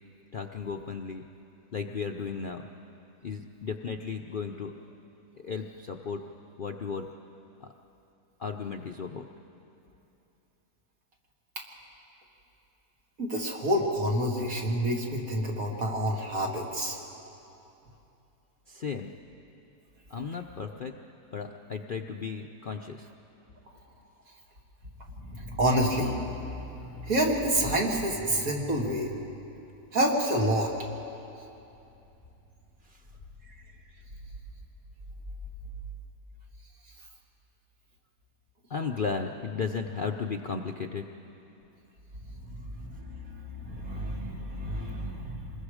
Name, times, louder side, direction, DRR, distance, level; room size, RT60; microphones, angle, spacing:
voice 1, 0.3-1.2 1.7-2.6 3.2-4.7 5.4-6.2 6.6-7.1 7.6-7.7 8.4-9.2 18.7-19.1 20.1-20.9 21.3-23.1 38.7-41.0, left 5 dB, 70° left, 3 dB, 0.5 m, -34 dB
voice 2, 13.2-17.0 25.2-29.2 29.9-30.7 42.5-45.5, right 1 dB, 55° right, -1 dB, 2.5 m, -28 dB
26.0 x 21.5 x 5.0 m, 2.9 s
omnidirectional pair, 1.8 m